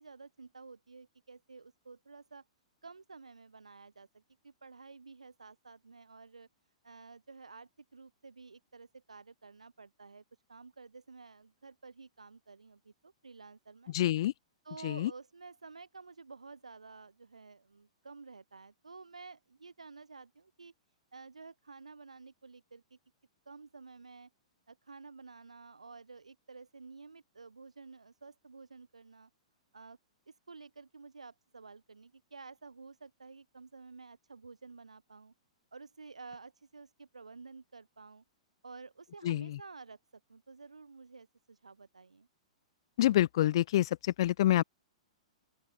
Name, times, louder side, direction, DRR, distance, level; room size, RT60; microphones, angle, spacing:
voice 1, 0.0-2.5 2.8-6.5 6.8-10.2 10.5-13.9 14.6-20.7 21.1-23.0 23.5-24.3 24.7-29.3 29.7-30.0 30.3-35.3 35.7-38.2 38.6-40.0 40.3-42.3, right 4 dB, 75° right, 1.8 m, -52 dB
voice 2, 13.9-14.3 14.8-15.1 39.2-39.5 43.0-43.9 44.2-44.6, left 13 dB, 50° left, 0.3 m, -26 dB
open air
figure-of-eight pair, 110°, 3 cm